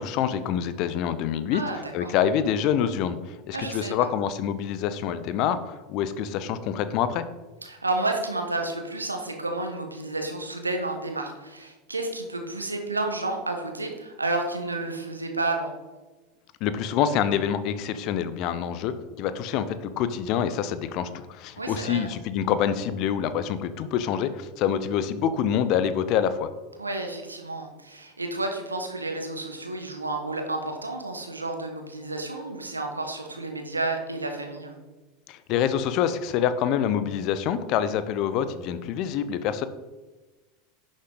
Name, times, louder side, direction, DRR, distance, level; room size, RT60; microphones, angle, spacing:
voice 1, 0.0-1.6 1.9-7.2 16.6-26.5 35.3-39.7, left 9 dB, 50° left, 12 dB, 0.8 m, -26 dB
voice 2, 1.5-2.1 3.5-3.9 7.6-15.7 21.6-22.1 26.8-34.8, right 2 dB, 85° right, 3 dB, 1.4 m, -31 dB
11.0 x 6.4 x 4.0 m, 1.2 s
figure-of-eight pair, 80°, 0 cm